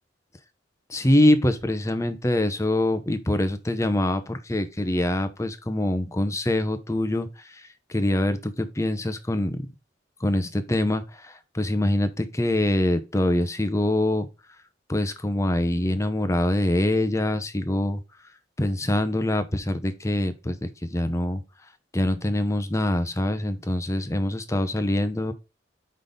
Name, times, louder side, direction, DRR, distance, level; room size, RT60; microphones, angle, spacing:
voice 1, 0.9-7.3 7.9-9.6 10.2-14.3 14.9-18.0 18.6-21.4 21.9-25.3, left 1 dB, 15° left, 0.7 m, -24 dB
5.3 x 4.1 x 5.0 m
head